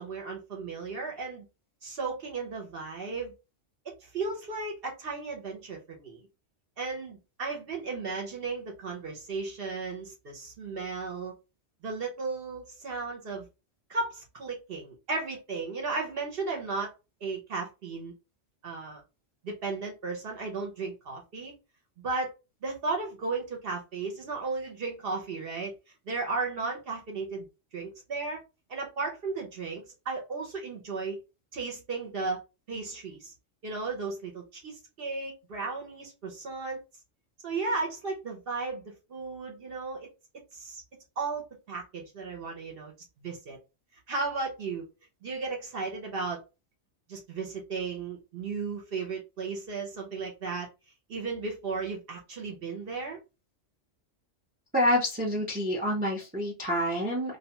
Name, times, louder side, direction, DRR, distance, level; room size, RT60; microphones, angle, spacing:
voice 1, 0.0-1.5 1.8-3.3 3.9-6.2 6.8-11.3 11.8-13.5 13.9-16.9 17.2-18.1 18.6-19.0 19.4-21.5 22.0-22.3 22.6-25.8 26.1-27.5 27.7-28.4 28.7-31.2 31.5-32.4 32.7-33.3 33.6-36.8 37.4-40.1 40.5-40.8 41.2-42.9 43.2-43.6 44.1-44.9 45.2-46.4 47.1-50.7 51.1-53.2, right 4 dB, 60° right, 0.8 m, -35 dB
voice 2, 54.7-57.4, equal, 15° right, 0.4 m, -27 dB
2.4 x 2.2 x 2.8 m
omnidirectional pair, 1.3 m